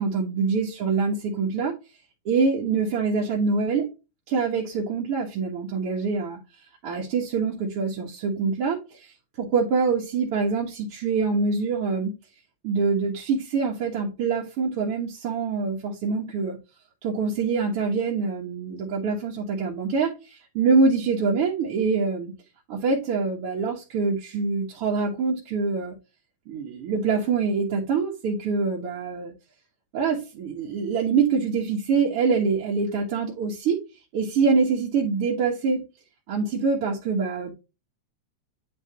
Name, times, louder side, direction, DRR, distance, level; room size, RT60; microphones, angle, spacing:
voice 1, 0.0-1.7 2.3-3.9 4.3-6.4 6.8-12.1 12.6-16.6 17.0-22.3 22.7-25.9 26.5-29.3 29.9-33.8 34.1-35.8 36.3-37.5, right 4 dB, 55° right, 2.0 m, -25 dB
9.8 x 3.5 x 3.6 m
omnidirectional pair, 3.3 m